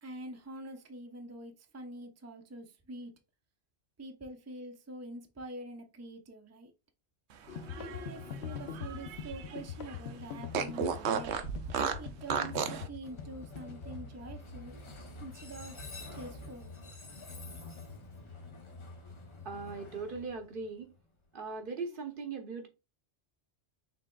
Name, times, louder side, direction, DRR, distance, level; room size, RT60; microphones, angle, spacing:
voice 1, 0.0-3.1 4.0-6.7 7.8-11.4 12.0-14.7 15.2-16.7, right 2 dB, 20° right, 0.5 m, -46 dB
sound 1, 7.5-14.0, left 7 dB, 75° left, 0.9 m, -43 dB
Fart, 7.5-9.6 9.9-10.0 10.5-12.9, right 7 dB, 85° right, 0.9 m, -34 dB
Train, 13.0-21.0, left 2 dB, 30° left, 0.7 m, -47 dB
voice 2, 19.4-20.9 21.3-22.7, right 4 dB, 55° right, 0.8 m, -39 dB
5.6 x 3.5 x 2.2 m
omnidirectional pair, 1.1 m